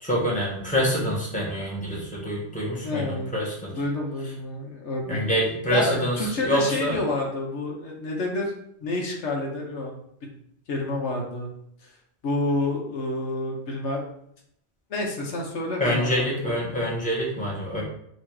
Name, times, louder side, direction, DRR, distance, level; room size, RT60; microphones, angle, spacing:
voice 1, 0.0-3.7 5.1-7.0 15.8-17.8, equal, 5° left, -5 dB, 1.2 m, -26 dB
voice 2, 2.8-3.3 3.7-5.2 5.7-8.5 8.8-9.9 10.7-11.5 11.8-11.9 12.2-14.0 14.9-16.6, left 2 dB, 80° left, 0 dB, 1.2 m, -29 dB
4.0 x 2.8 x 4.7 m, 0.73 s
omnidirectional pair, 1.2 m